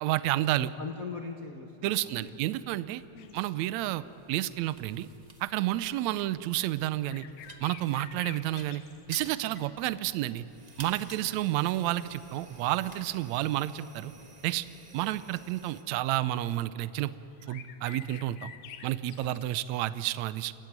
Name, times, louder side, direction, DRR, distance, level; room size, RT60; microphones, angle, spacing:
voice 1, 0.0-0.7 1.8-3.0 3.3-5.1 5.4-7.3 7.6-8.8 9.1-10.5 10.8-14.1 14.4-14.7 14.9-17.1 17.5-18.5 18.8-20.5, right 15 dB, 80° right, 15 dB, 1.9 m, -30 dB
voice 2, 0.6-2.5 3.1-3.4 11.1-11.5 19.2-19.4, left 5 dB, 60° left, 2 dB, 0.9 m, -42 dB
sound 1, 2.2-15.8, right 2 dB, 40° right, 0.5 m, -52 dB
sound 2, 3.2-3.6 5.6-5.7 6.5-6.6 7.1-9.8 10.5-10.9 11.5-11.6 12.5-12.9 13.5-13.8 15.7-15.9 17.0-17.1 17.3-19.9, left 9 dB, 85° left, 2.5 m, -49 dB
28.0 x 14.0 x 9.5 m, 3.0 s
omnidirectional pair, 3.3 m